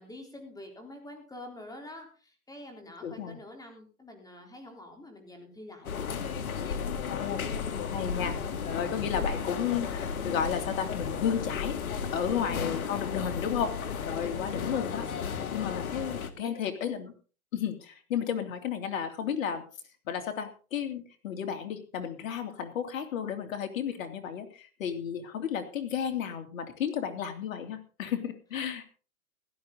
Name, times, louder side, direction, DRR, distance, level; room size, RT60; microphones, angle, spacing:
voice 1, 0.0-6.0 15.8-16.5 16.8-17.0, left 1 dB, 10° left, 3 dB, 3.8 m, -47 dB
voice 2, 3.0-3.4 7.2-7.5 7.9-11.8 12.1-13.7 14.0-17.1 17.5-19.6 20.1-28.8, left 8 dB, 65° left, 7 dB, 3.0 m, -33 dB
sound 1, 5.8-16.3, left 6 dB, 80° left, 1.9 m, -34 dB
16.5 x 12.0 x 3.9 m, 0.38 s
hypercardioid pair, 125°, 43 cm